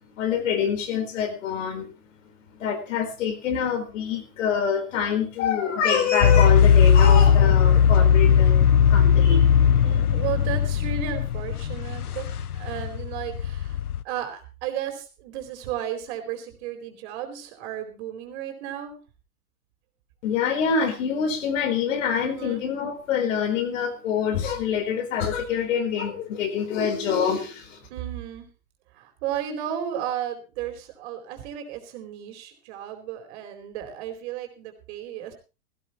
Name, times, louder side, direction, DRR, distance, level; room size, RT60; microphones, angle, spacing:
voice 1, 0.2-1.9 2.5-9.5 20.2-27.9, left 7 dB, 60° left, 6 dB, 4.2 m, -26 dB
sound 1, 6.2-14.0, left 7 dB, 85° left, 0.7 m, -18 dB
voice 2, 9.8-13.8 14.0-19.0 22.2-22.6 27.9-28.5 28.9-35.3, right 10 dB, 50° right, 5 dB, 4.3 m, -34 dB
17.5 x 16.0 x 3.0 m, 0.32 s
figure-of-eight pair, 105°, 44 cm